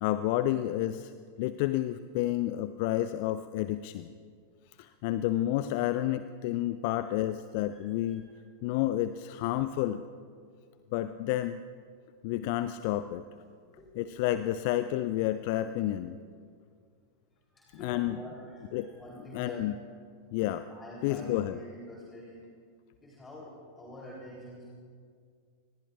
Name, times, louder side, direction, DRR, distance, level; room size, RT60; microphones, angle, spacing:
voice 1, 0.0-1.1 1.4-4.1 4.8-8.3 8.6-10.0 10.9-11.6 12.2-13.2 14.0-16.2 17.7-18.2 18.7-18.9 19.3-19.7 20.3-20.7 21.0-21.6, left 14 dB, 45° left, 12 dB, 0.4 m, -30 dB
voice 2, 7.6-8.4 13.8-13.9 16.0-16.1 17.5-19.7 20.7-22.4 23.0-24.8, equal, 15° left, -4 dB, 3.4 m, -46 dB
25.5 x 20.5 x 2.4 m, 2.1 s
figure-of-eight pair, 90°, 0 cm